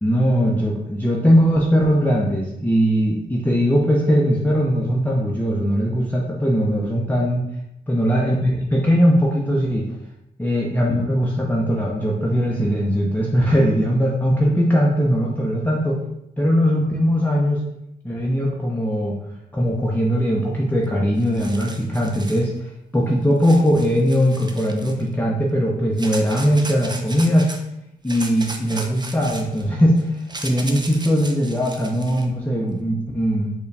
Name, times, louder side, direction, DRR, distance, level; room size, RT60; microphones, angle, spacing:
voice 1, 0.0-7.5 7.9-9.9 10.4-16.0 16.4-17.6 18.0-19.2 19.5-27.5 28.0-33.5, equal, 10° left, -3 dB, 0.7 m, -20 dB
sound 1, 20.9-21.0 21.2-22.5 23.4-25.1 26.0-27.6 28.1-32.3, right 2 dB, 25° right, 0.6 m, -36 dB
4.6 x 2.3 x 3.3 m, 0.83 s
cardioid pair, 50°, 16 cm